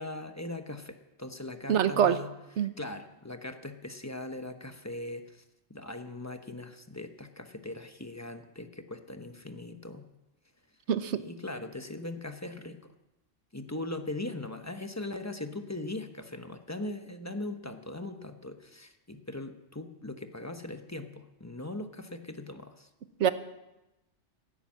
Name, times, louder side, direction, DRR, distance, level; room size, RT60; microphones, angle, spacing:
voice 1, 0.0-2.3 2.6-5.4 5.7-10.1 11.1-12.9 13.5-22.9, left 2 dB, 15° left, 7 dB, 0.9 m, -40 dB
voice 2, 1.7-2.2 2.6-2.7 10.9-11.2 23.2-23.3, right 8 dB, 70° right, 12 dB, 1.1 m, -24 dB
16.5 x 9.8 x 7.4 m, 0.97 s
omnidirectional pair, 1.2 m